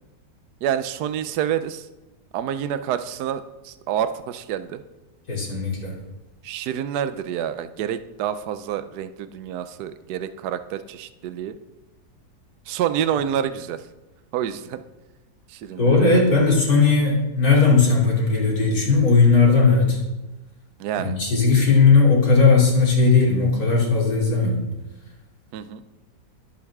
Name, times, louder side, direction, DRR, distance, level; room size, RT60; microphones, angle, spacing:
voice 1, 0.6-1.9 2.3-4.8 6.4-11.6 12.7-13.8 14.3-14.8 15.5-16.2 20.8-21.2 25.5-25.8, right 9 dB, 70° right, 11 dB, 1.2 m, -28 dB
voice 2, 5.3-5.9 15.8-20.0 21.0-24.6, left 4 dB, 55° left, -3 dB, 3.6 m, -17 dB
21.5 x 8.7 x 3.6 m, 1.0 s
omnidirectional pair, 1.9 m